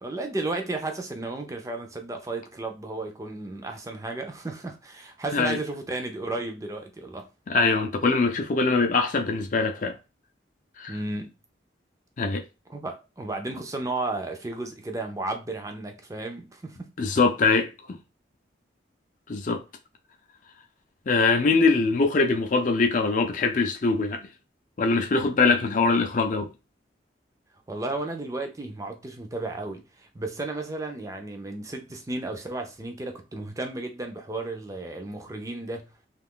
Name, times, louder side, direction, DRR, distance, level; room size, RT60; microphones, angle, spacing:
voice 1, 0.0-7.3 10.9-11.3 12.7-16.9 27.7-35.9, right 2 dB, 20° right, 0.5 m, -33 dB
voice 2, 7.5-10.0 10.8-11.0 12.2-12.4 17.0-17.7 19.3-19.6 21.1-24.2 24.8-26.5, left 4 dB, 45° left, 0.5 m, -22 dB
2.5 x 2.4 x 3.6 m
head